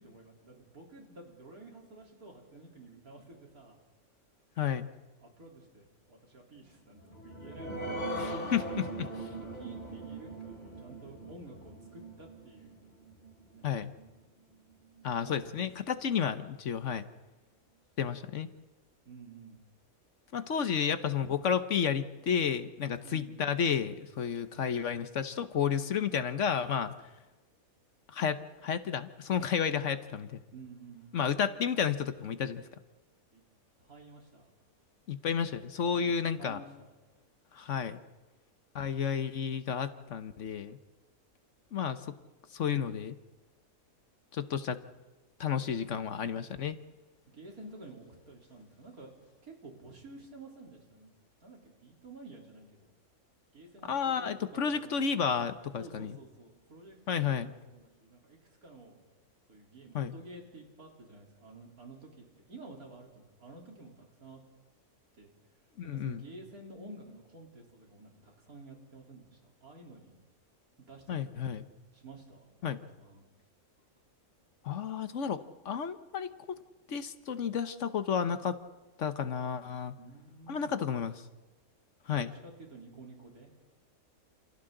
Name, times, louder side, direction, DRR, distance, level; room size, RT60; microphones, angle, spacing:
voice 1, 0.0-3.8 5.2-8.0 9.4-12.8 13.5-13.7 15.2-16.0 19.1-19.6 23.0-23.4 30.5-31.3 33.3-33.4 33.8-34.5 35.9-36.9 47.3-49.1 49.4-51.1 51.4-52.9 53.5-55.1 55.8-59.0 59.5-64.4 65.1-65.3 65.8-70.1 70.9-71.6 71.9-73.2 80.0-80.7 82.1-83.5, right 2 dB, 90° right, -1 dB, 4.1 m, -51 dB
voice 2, 4.6-4.9 8.2-9.1 13.6-13.9 15.0-17.1 18.0-18.5 20.3-26.9 28.1-30.4 31.1-32.6 35.1-36.6 37.5-38.0 38.7-40.8 41.7-42.0 42.5-43.2 44.3-44.8 45.4-46.8 53.9-56.1 57.1-57.5 59.9-60.1 65.8-66.2 71.1-71.7 72.6-72.8 74.6-76.6 76.9-78.6 79.0-79.9 80.5-81.1 82.1-82.3, left 7 dB, 60° left, 11 dB, 1.2 m, -31 dB
sound 1, 7.0-14.1 14.5-14.6 15.0-15.1, right 1 dB, 30° left, 2.9 m, -40 dB
28.5 x 28.0 x 3.9 m, 1.1 s
omnidirectional pair, 1.5 m